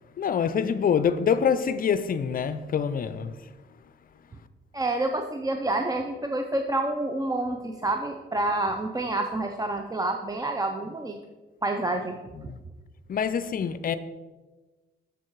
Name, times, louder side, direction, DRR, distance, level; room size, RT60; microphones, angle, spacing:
voice 1, 0.2-3.3 12.4-12.6 13.1-14.0, left 7 dB, 45° left, 0.5 m, -25 dB
voice 2, 4.7-11.2 11.6-12.2, right 2 dB, 20° right, 0.6 m, -28 dB
7.6 x 6.6 x 4.6 m
cardioid pair, 90°, 20 cm